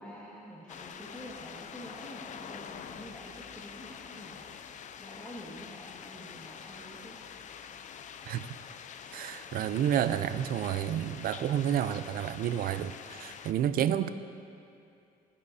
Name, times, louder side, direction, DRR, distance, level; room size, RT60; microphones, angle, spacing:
voice 1, 0.0-7.2 13.7-14.1, equal, 10° left, -8 dB, 1.8 m, -47 dB
sound 1, 0.7-13.5, left 7 dB, 45° left, 0.5 m, -46 dB
voice 2, 9.1-14.1, right 10 dB, 60° right, 12 dB, 0.5 m, -30 dB
18.0 x 10.5 x 2.8 m, 2.5 s
cardioid pair, 110°, 17 cm